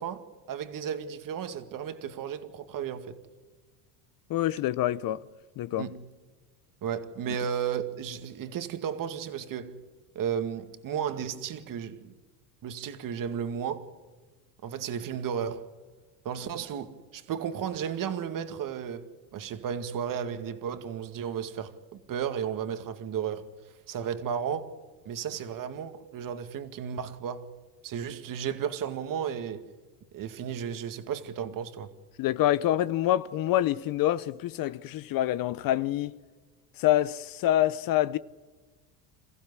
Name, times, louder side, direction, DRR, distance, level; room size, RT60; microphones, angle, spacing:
voice 1, 0.0-3.2 5.8-6.0 6.8-9.8 10.2-12.1 12.6-13.8 14.6-15.7 16.2-23.5 23.9-24.7 25.1-27.5 27.8-29.6 30.1-31.9, right 8 dB, 45° right, 2.1 m, -34 dB
voice 2, 4.3-5.3 5.6-5.9 32.2-36.2 36.8-38.2, left 13 dB, 45° left, 0.8 m, -26 dB
28.0 x 15.0 x 9.8 m
supercardioid pair, 105°, 47 cm